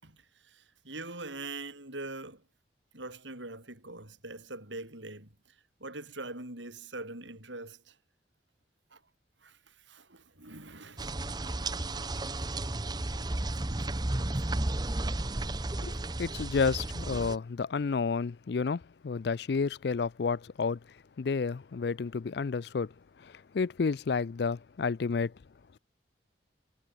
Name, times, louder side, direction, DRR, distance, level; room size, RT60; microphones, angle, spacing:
voice 1, 0.0-2.4 2.9-5.3 5.8-8.0 8.9-9.0 9.4-11.1 11.5-11.6 13.7-13.8 14.3-14.5, right 2 dB, 75° right, 7.5 m, -43 dB
sound 1, 11.0-17.4, right 2 dB, 20° right, 0.8 m, -33 dB
voice 2, 15.8-20.8 21.2-22.9 23.2-25.3, left 5 dB, 60° left, 0.4 m, -31 dB
head